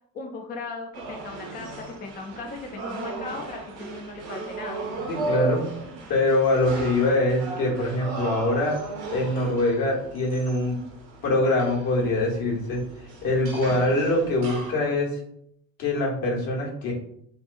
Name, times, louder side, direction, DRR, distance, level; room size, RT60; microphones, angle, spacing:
voice 1, 0.1-4.8, left 3 dB, 25° left, 1 dB, 0.4 m, -37 dB
sound 1, 0.9-14.7, right 2 dB, 55° right, 0.8 m, -36 dB
voice 2, 5.1-5.7 6.1-8.8 9.1-10.8 11.2-12.8 13.2-15.2 15.8-16.9, left 2 dB, 50° left, -2 dB, 1.1 m, -23 dB
2.8 x 2.4 x 2.3 m, 0.68 s
figure-of-eight pair, 50°, 43 cm